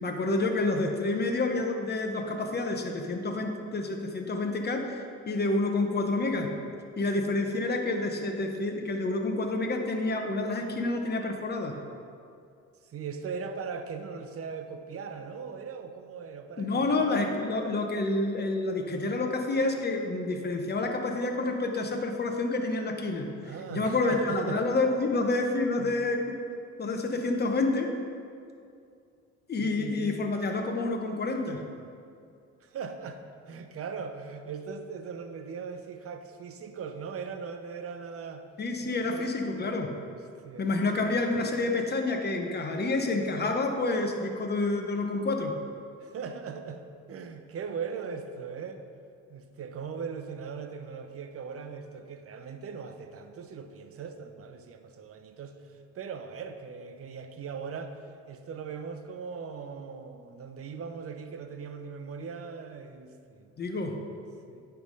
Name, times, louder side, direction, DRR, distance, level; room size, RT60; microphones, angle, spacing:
voice 1, 0.0-6.5 7.0-11.7 16.6-26.4 26.8-27.9 29.5-31.6 38.6-39.9 40.6-45.5 63.6-64.0, left 2 dB, 35° left, 4 dB, 0.9 m, -28 dB
voice 2, 12.8-17.1 23.4-24.7 25.8-25.9 29.6-30.2 32.6-38.5 38.8-39.4 40.4-40.7 46.0-48.8 49.3-58.0 58.3-63.5 64.5-64.6, right 6 dB, 50° right, 7 dB, 0.7 m, -39 dB
9.4 x 3.5 x 5.4 m, 2.4 s
cardioid pair, 90°, 30 cm